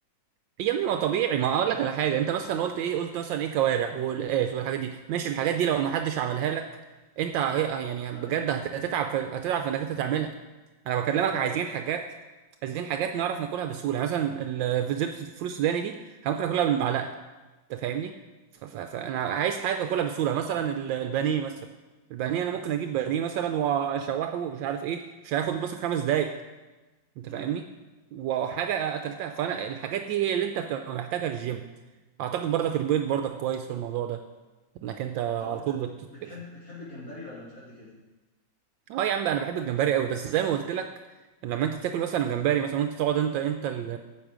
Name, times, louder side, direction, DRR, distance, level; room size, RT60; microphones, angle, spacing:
voice 1, 0.6-6.7 7.2-10.3 10.9-12.1 12.6-17.1 17.7-18.1 18.6-21.6 22.1-26.3 27.2-27.6 28.1-31.6 32.2-34.2 34.8-35.9 38.9-40.9 41.4-44.0, right 9 dB, 80° right, 6 dB, 1.3 m, -28 dB
voice 2, 8.1-8.5 11.0-11.6 27.2-27.5 35.4-35.8 36.1-37.9, left 1 dB, 50° left, -8 dB, 2.8 m, -42 dB
12.0 x 7.8 x 5.0 m, 1.2 s
omnidirectional pair, 2.1 m